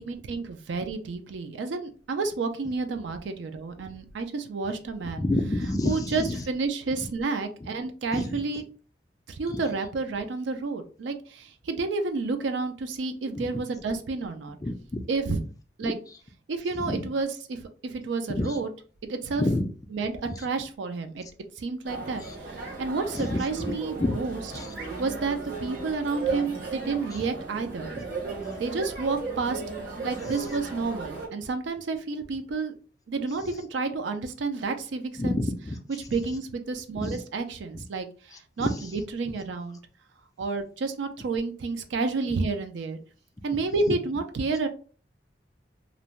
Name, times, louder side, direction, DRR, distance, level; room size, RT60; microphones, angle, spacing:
voice 1, 0.0-5.3 5.8-8.6 9.3-14.6 15.1-15.4 15.8-16.0 16.5-18.7 19.0-19.4 19.9-21.2 21.6-24.4 25.0-27.9 28.6-29.6 30.0-32.7 33.1-35.4 36.1-39.8 40.4-43.0 43.4-44.7, right 3 dB, 80° right, 7 dB, 0.4 m, -30 dB
voice 2, 5.2-6.4 8.1-8.4 9.5-9.6 13.3-13.5 14.6-15.0 15.8-15.9 16.9-17.1 18.3-18.6 19.3-19.7 20.2-20.3 22.2-22.4 23.1-23.7 24.0-24.2 24.5-24.7 27.1-27.2 27.9-28.0 30.2-30.3 35.2-35.8 36.9-37.2 38.3-38.9, left 1 dB, 20° left, 5 dB, 0.3 m, -29 dB
sound 1, 21.8-31.3, right 4 dB, 50° right, 1.0 m, -35 dB
2.5 x 2.1 x 3.0 m, 0.39 s
head